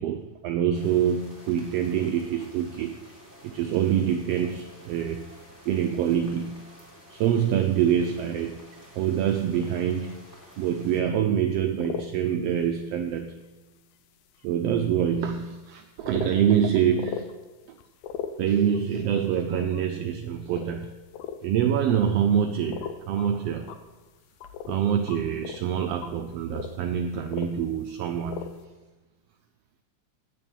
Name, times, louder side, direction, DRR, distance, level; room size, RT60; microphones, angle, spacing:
voice 1, 0.0-3.0 3.4-5.3 5.7-6.7 7.1-8.7 8.9-10.3 10.6-13.4 14.4-17.4 18.4-20.9 21.4-23.7 24.7-28.6, right 9 dB, 90° right, 6 dB, 1.3 m, -25 dB
sound 1, 0.7-11.0, equal, 5° left, 2.2 m, -51 dB
sound 2, 11.0-11.1 11.5-12.1 12.6-12.8 13.4-13.5 14.3-14.4 15.0-15.1 15.7-15.8 16.0-16.3 16.9-17.3 17.8-18.8 19.2-19.8 20.3-20.7 21.0-21.4 21.9-22.3 22.6-23.3 23.6-24.8 25.1-28.0 28.2-28.6, left 8 dB, 75° left, 1.8 m, -38 dB
8.5 x 7.0 x 7.3 m, 1.2 s
omnidirectional pair, 3.4 m